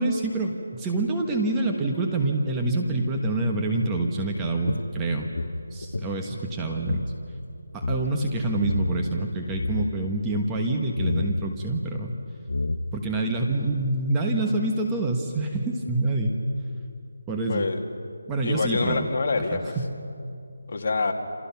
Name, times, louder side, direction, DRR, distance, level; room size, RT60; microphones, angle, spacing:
voice 1, 0.0-5.3 5.7-7.1 7.7-12.1 12.9-16.3 17.0-17.7 18.3-19.1 19.5-19.9, right 2 dB, 10° right, 1 dB, 1.3 m, -26 dB
sound 1, 4.7-7.1 7.4-7.5 7.7-8.0 8.6-9.1 9.4-10.0 11.0-11.4 12.1-12.2 12.5-13.1, left 2 dB, 75° left, 1.2 m, -29 dB
voice 2, 17.5-17.8 18.4-19.8 20.7-21.1, left 3 dB, 45° left, 3 dB, 2.2 m, -26 dB
28.5 x 28.0 x 5.9 m, 2.5 s
figure-of-eight pair, 170°, 0 cm